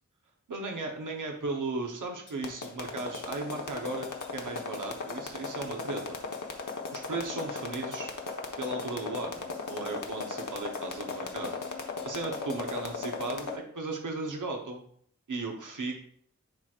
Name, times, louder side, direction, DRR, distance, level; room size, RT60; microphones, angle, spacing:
voice 1, 0.5-6.2 6.9-8.1 8.6-11.5 12.0-14.8 15.3-16.0, right 3 dB, 85° right, 1 dB, 1.0 m, -36 dB
sound 1, 2.3-13.5, left 4 dB, 80° left, 1.0 m, -36 dB
11.0 x 4.4 x 2.4 m, 0.63 s
wide cardioid pair, 50°, 30 cm